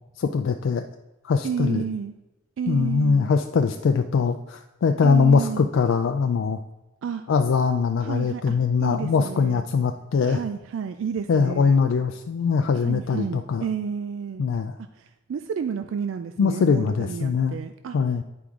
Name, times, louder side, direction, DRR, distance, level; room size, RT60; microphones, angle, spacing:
voice 1, 0.2-0.8 1.2-1.8 2.7-6.6 7.3-10.4 11.3-13.6 14.4-14.7 16.4-17.6 17.9-18.2, left 5 dB, 70° left, 6 dB, 0.3 m, -22 dB
voice 2, 1.4-2.1 2.6-3.3 5.0-5.7 7.0-7.2 8.0-9.6 10.2-11.8 12.8-14.4 15.0-18.0, right 7 dB, 70° right, 9 dB, 0.3 m, -31 dB
8.5 x 4.7 x 3.7 m, 1.0 s
head